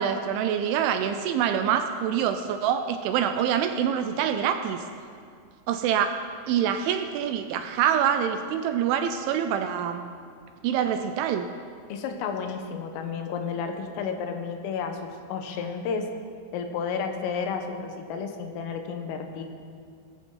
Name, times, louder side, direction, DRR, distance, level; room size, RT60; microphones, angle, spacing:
voice 1, 0.0-4.8 5.7-6.1 6.5-10.0 10.6-11.5, right 9 dB, 80° right, 7 dB, 2.8 m, -25 dB
voice 2, 11.9-16.1 16.5-19.4, left 6 dB, 85° left, 5 dB, 3.8 m, -32 dB
18.5 x 14.5 x 3.9 m, 2.2 s
omnidirectional pair, 5.8 m